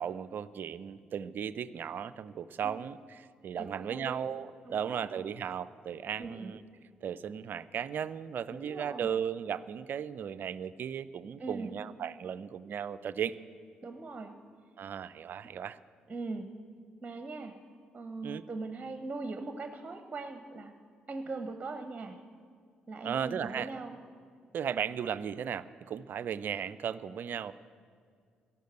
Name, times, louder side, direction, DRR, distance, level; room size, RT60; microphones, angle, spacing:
voice 1, 0.0-6.6 7.0-13.3 14.8-15.8 18.2-18.4 23.0-23.7 24.5-27.5, right 8 dB, 50° right, 16 dB, 0.4 m, -36 dB
voice 2, 3.6-4.2 4.7-5.1 6.2-6.5 8.5-9.1 11.4-11.8 13.8-14.3 15.4-15.5 16.1-16.5 17.0-17.6 17.9-20.7 21.1-22.2 22.9-23.9, right 3 dB, 25° right, 8 dB, 0.9 m, -40 dB
13.5 x 11.5 x 7.8 m, 2.2 s
figure-of-eight pair, 40°, 4 cm